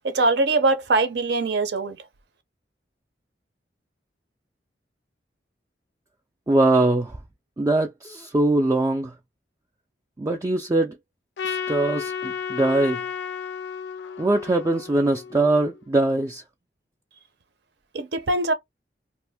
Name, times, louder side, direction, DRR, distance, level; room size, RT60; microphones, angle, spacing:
voice 1, 0.0-2.0 17.9-18.5, right 3 dB, 65° right, 0.6 m, -22 dB
voice 2, 6.5-7.2 7.6-9.1 10.2-11.0 11.4-13.0 14.2-16.4, right 2 dB, 20° right, 0.3 m, -22 dB
Trumpet, 11.4-15.8, left 7 dB, 70° left, 0.4 m, -33 dB
2.6 x 2.5 x 3.4 m
head